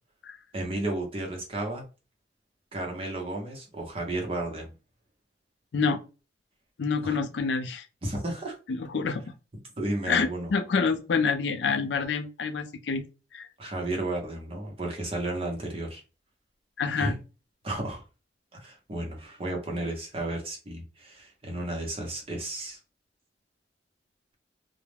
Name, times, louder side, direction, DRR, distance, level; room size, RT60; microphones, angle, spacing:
voice 1, 0.5-1.8 2.7-4.7 7.0-7.2 8.0-8.5 9.8-10.5 13.6-16.0 17.0-17.1 17.6-18.0 18.5-22.8, right 1 dB, 35° right, 0.7 m, -33 dB
voice 2, 6.8-7.8 8.7-9.2 10.1-13.0 13.3-13.5 16.8-17.2, left 5 dB, 80° left, 0.4 m, -27 dB
2.2 x 2.0 x 3.2 m
head